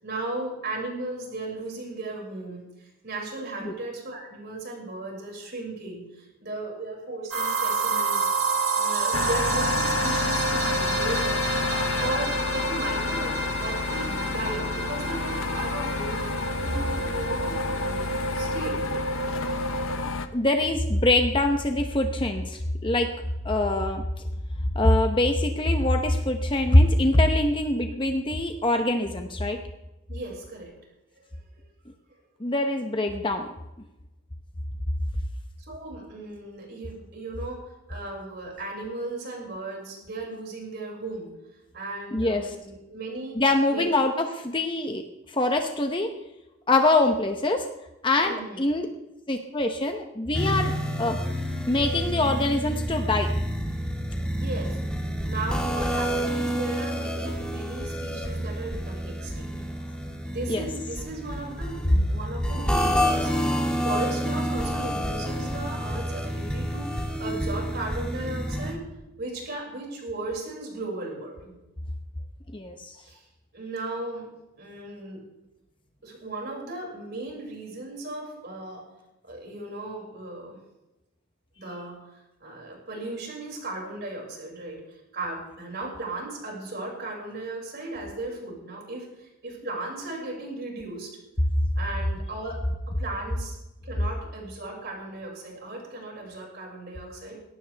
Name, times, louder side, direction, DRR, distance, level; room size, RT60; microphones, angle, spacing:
voice 1, 0.0-11.2 12.0-13.3 13.6-16.2 16.6-18.8 30.1-30.7 31.2-31.3 35.6-41.3 41.7-43.4 43.7-44.0 48.1-48.6 54.3-54.8 55.2-59.6 60.3-68.8 69.2-71.6 73.0-73.2 73.5-74.3 74.6-75.2 76.0-78.8 79.2-80.6 81.6-91.2 91.8-92.6 93.0-93.6 93.8-97.4, right 2 dB, 50° right, -2 dB, 6.2 m, -36 dB
sound 1, 7.3-20.0, right 3 dB, 70° right, 2.9 m, -29 dB
sound 2, 9.1-20.3, left 4 dB, 70° left, 1.0 m, -30 dB
voice 2, 20.3-23.1 23.4-24.0 24.7-29.6 32.4-33.5 42.1-42.5 43.4-46.1 46.7-47.6 48.0-48.9 49.3-50.7 51.0-51.2 51.7-53.3 60.5-60.6 72.5-73.0, left 2 dB, 25° left, 5 dB, 1.0 m, -23 dB
sound 3, 50.3-68.7, equal, 5° left, 2.3 m, -29 dB
21.0 x 17.5 x 3.5 m, 0.97 s
head